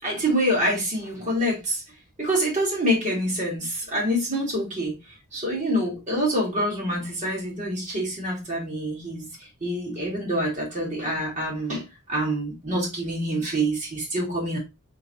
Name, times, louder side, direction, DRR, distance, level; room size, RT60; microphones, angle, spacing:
voice 1, 0.0-1.8 2.2-14.6, equal, 35° right, 2.3 m, -26 dB
4.1 x 3.8 x 2.9 m
head